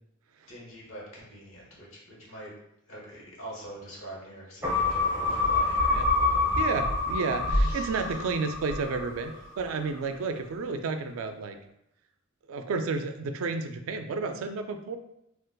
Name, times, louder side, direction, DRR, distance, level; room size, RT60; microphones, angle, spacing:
voice 1, 0.5-2.5 2.9-6.0 7.5-8.2 10.1-10.4, right 1 dB, 75° left, -4 dB, 1.2 m, -45 dB
sound 1, 4.6-9.3 9.7-9.8, left 3 dB, 15° right, 0.9 m, -26 dB
voice 2, 6.6-11.6 12.5-15.0, right 4 dB, 90° right, 7 dB, 0.4 m, -31 dB
3.8 x 2.4 x 2.2 m, 0.80 s
head